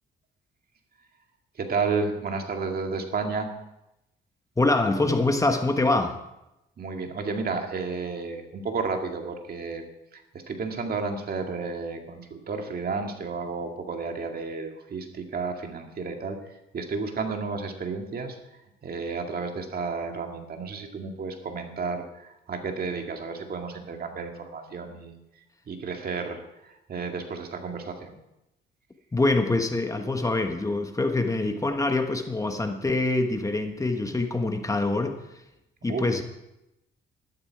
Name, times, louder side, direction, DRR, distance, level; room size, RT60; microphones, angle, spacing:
voice 1, 1.6-3.5 6.8-9.9 10.1-28.2 35.9-36.1, right 4 dB, 50° right, 4 dB, 2.0 m, -32 dB
voice 2, 4.6-6.2 29.1-35.1 35.8-36.2, left 2 dB, 15° left, 5 dB, 1.3 m, -25 dB
12.5 x 12.5 x 4.7 m, 0.90 s
cardioid pair, 90°, 20 cm